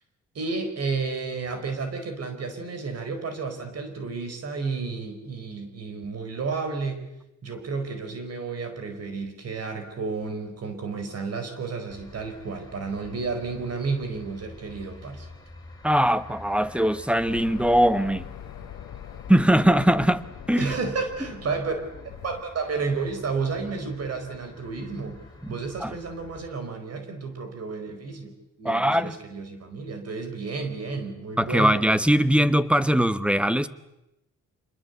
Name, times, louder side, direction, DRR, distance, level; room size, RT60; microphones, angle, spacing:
voice 1, 0.3-7.0 7.4-15.3 20.6-21.7 22.0-25.2 25.5-28.3 28.6-31.8, right 4 dB, 55° right, 4.5 m, -31 dB
sound 1, 11.9-26.5, left 2 dB, 15° left, 5.7 m, -48 dB
voice 2, 15.8-18.2 19.3-20.7 25.8-25.9 28.6-29.2 31.4-33.7, equal, 5° right, 1.2 m, -21 dB
sound 2, 17.2-22.4, left 11 dB, 80° left, 1.2 m, -42 dB
26.0 x 21.5 x 8.1 m
cardioid pair, 90°, 30 cm